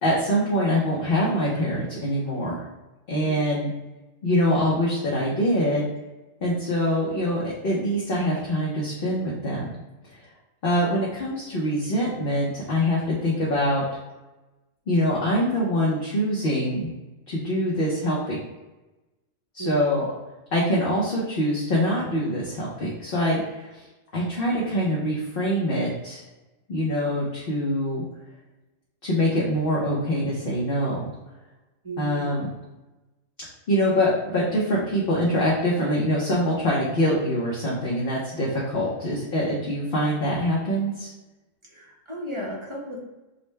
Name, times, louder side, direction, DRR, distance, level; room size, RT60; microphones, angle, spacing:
voice 1, 0.0-2.6 3.1-3.7 4.2-5.8 6.4-9.7 10.6-13.8 14.9-16.9 17.3-18.4 19.5-20.1 20.5-23.8 24.1-26.2 26.7-28.0 29.0-31.0 32.0-32.5 33.7-41.1, equal, 50° left, -5 dB, 1.0 m, -24 dB
voice 2, 3.2-3.6 19.6-19.8 31.8-32.3 41.6-43.0, right 1 dB, 25° right, -3 dB, 0.8 m, -35 dB
5.3 x 2.2 x 3.2 m, 1.1 s
omnidirectional pair, 1.3 m